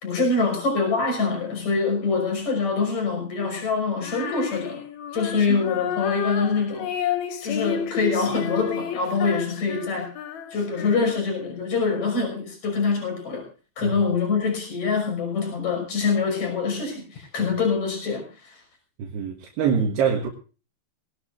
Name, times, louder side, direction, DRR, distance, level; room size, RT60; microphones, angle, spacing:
voice 1, 0.0-4.8 5.1-6.9 7.4-10.1 10.5-13.5 13.8-18.6, left 4 dB, 40° left, 7.0 m, -25 dB
Female singing, 4.0-11.4, left 8 dB, 65° left, 2.0 m, -31 dB
voice 2, 19.0-20.3, right 6 dB, 75° right, 3.6 m, -24 dB
20.5 x 18.5 x 2.5 m
omnidirectional pair, 4.9 m